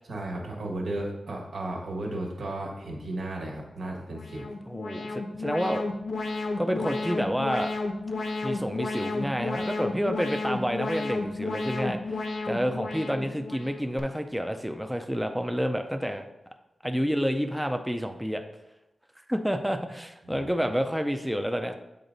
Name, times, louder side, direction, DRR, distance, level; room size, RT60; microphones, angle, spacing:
voice 1, 0.1-4.5 20.2-20.5, right 1 dB, 85° right, -1 dB, 1.5 m, -34 dB
Alarm, 4.1-14.0, left 3 dB, 70° left, 0.7 m, -32 dB
voice 2, 4.7-5.8 6.6-7.7 8.4-16.3 16.8-18.4 19.3-21.7, equal, ahead, 5 dB, 0.4 m, -29 dB
8.1 x 3.9 x 4.0 m, 0.94 s
wide cardioid pair, 145°, 0 cm